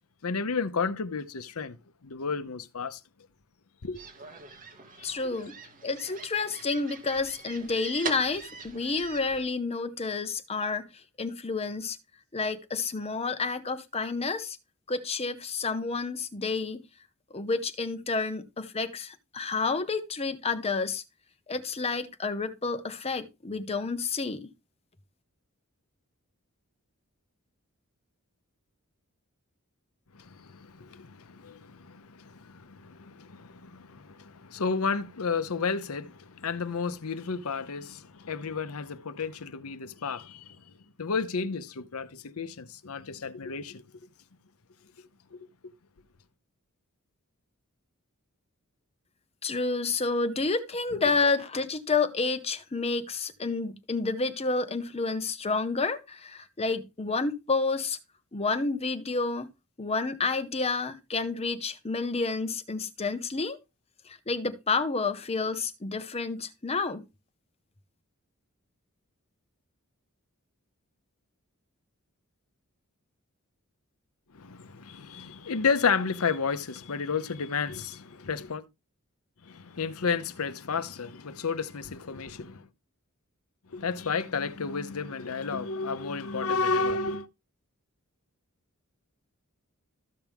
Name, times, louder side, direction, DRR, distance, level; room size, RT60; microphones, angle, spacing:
voice 1, 0.2-1.8 2.0-3.0 3.8-4.0 5.0-5.1 30.1-40.6 41.0-43.8 45.3-45.5 74.3-78.6 79.4-82.7 83.7-87.3, left 5 dB, 75° left, 0.8 m, -32 dB
sound 1, 3.9-9.4, right 5 dB, 40° right, 2.1 m, -42 dB
voice 2, 5.0-5.5 5.8-10.9 11.2-12.0 12.3-14.6 14.9-16.8 17.3-21.0 21.5-24.5 49.4-58.0 58.3-59.5 59.8-63.6 64.1-67.0, left 4 dB, 30° left, 0.9 m, -30 dB
14.0 x 6.0 x 3.5 m
head